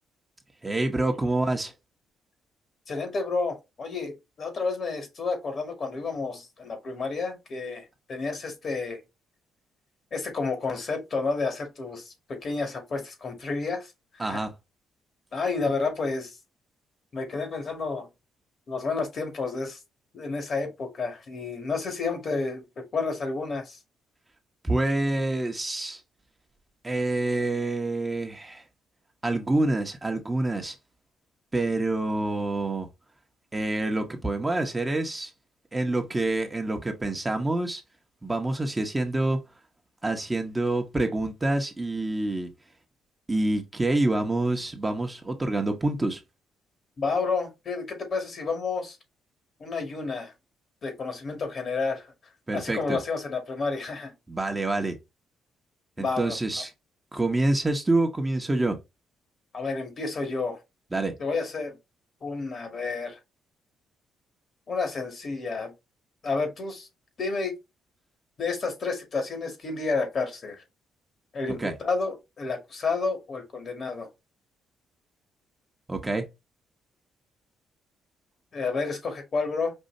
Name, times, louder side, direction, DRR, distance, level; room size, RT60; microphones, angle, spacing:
voice 1, 0.6-1.7 14.2-14.5 24.6-26.0 26.8-28.6 29.2-30.8 31.5-32.9 33.5-35.3 35.7-37.8 38.2-39.4 40.0-42.5 43.3-46.2 52.5-53.0 54.3-55.0 56.0-56.7 57.1-58.8 60.9-61.1 71.6-71.7 75.9-76.3, right 2 dB, 20° right, 1.0 m, -27 dB
voice 2, 2.9-9.0 10.1-13.9 14.2-14.4 15.3-16.3 17.1-18.1 18.7-19.8 20.1-23.8 47.0-49.0 49.6-50.3 50.8-52.1 52.5-54.1 56.0-56.4 59.5-60.6 61.2-61.7 62.2-63.2 64.7-65.7 66.2-66.9 67.2-67.5 68.4-70.6 71.3-74.1 78.5-79.7, left 4 dB, 50° left, 1.9 m, -30 dB
5.4 x 2.7 x 2.7 m
supercardioid pair, 70°, 0 cm